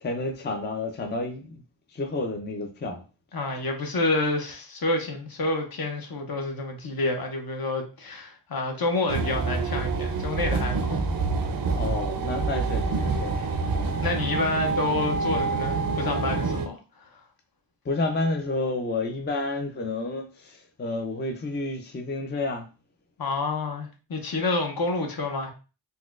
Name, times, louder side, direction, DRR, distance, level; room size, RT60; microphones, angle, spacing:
voice 1, 0.0-1.6 1.9-3.0 11.7-13.3 14.5-14.6 17.9-22.7, left 2 dB, 25° left, 0.5 m, -30 dB
voice 2, 3.3-11.0 13.3-13.8 14.0-17.1 23.2-25.5, left 2 dB, 55° left, 0.8 m, -29 dB
sound 1, 9.1-16.7, right 4 dB, 50° right, 0.5 m, -27 dB
4.1 x 2.2 x 2.4 m
wide cardioid pair, 100°, 44 cm